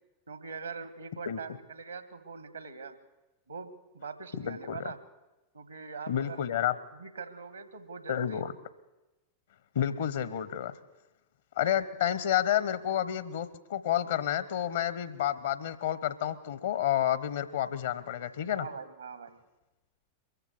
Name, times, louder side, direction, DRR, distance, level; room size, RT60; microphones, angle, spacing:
voice 1, 0.3-3.0 3.5-5.0 5.5-6.4 6.9-8.4 18.5-19.4, right 5 dB, 75° right, 12 dB, 1.6 m, -42 dB
voice 2, 4.4-4.8 6.1-6.7 8.1-8.5 9.7-10.7 11.6-18.7, left 10 dB, 60° left, 16 dB, 1.0 m, -30 dB
22.5 x 15.0 x 7.9 m, 1.0 s
figure-of-eight pair, 90°, 0 cm